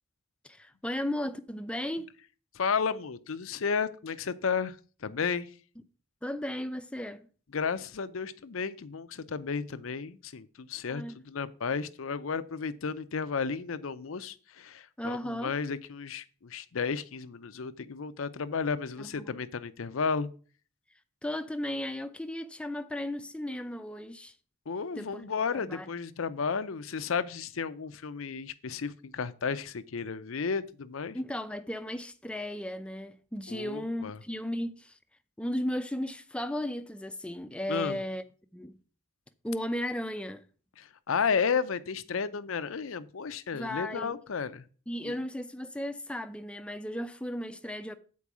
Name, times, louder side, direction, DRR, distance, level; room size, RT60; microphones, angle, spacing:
voice 1, 0.4-2.1 6.2-7.3 10.9-11.2 15.0-15.5 19.0-19.4 21.2-24.3 24.9-25.3 25.5-25.9 31.1-35.0 35.4-38.2 38.5-38.8 39.4-40.4 43.5-44.2 44.9-48.0, left 1 dB, 5° left, 0.5 m, -35 dB
voice 2, 2.5-5.5 7.5-20.3 24.7-31.2 33.5-34.2 37.7-38.0 40.8-44.7 45.0-45.2, left 5 dB, 75° left, 0.6 m, -33 dB
8.4 x 4.6 x 6.0 m
head